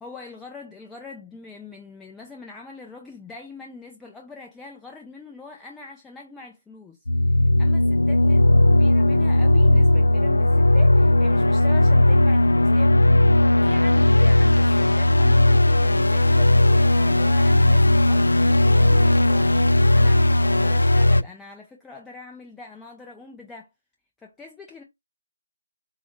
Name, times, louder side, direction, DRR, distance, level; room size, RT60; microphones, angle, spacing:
voice 1, 0.0-7.0 7.3-23.7 24.2-24.8, left 4 dB, 5° left, 0.3 m, -43 dB
sound 1, 7.1-21.2, left 1 dB, 90° left, 0.4 m, -17 dB
4.6 x 2.0 x 3.1 m
figure-of-eight pair, 165°, 0 cm